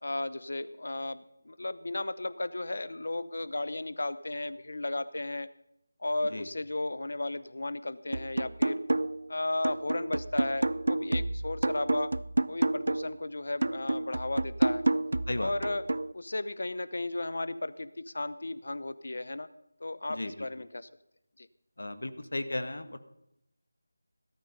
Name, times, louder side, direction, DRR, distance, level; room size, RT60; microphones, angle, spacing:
voice 1, 0.0-5.5 6.0-8.8 9.3-12.2 12.5-14.9 15.4-15.9 16.1-19.5 19.8-20.9 21.4-21.5, left 2 dB, 55° left, 15 dB, 0.7 m, -34 dB
sound 1, 8.1-9.3 9.6-13.2 13.6-16.1, right 2 dB, 70° right, 0.5 m, -30 dB
voice 2, 21.8-23.0, left 2 dB, 70° left, 10 dB, 1.7 m, -34 dB
17.5 x 12.5 x 5.4 m, 0.80 s
figure-of-eight pair, 180°, 0 cm